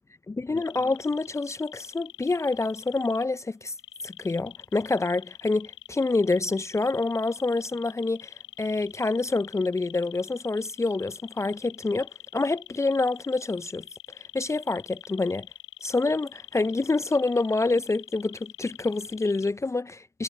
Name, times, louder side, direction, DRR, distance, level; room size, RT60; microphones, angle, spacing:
voice 1, 0.3-3.7 4.0-13.8 14.2-15.5 15.8-20.2, left 3 dB, 5° left, 1.3 m, -27 dB
sound 1, 0.6-3.2 3.8-19.5, left 13 dB, 25° left, 7.4 m, -45 dB
figure-of-eight pair, 100°, 44 cm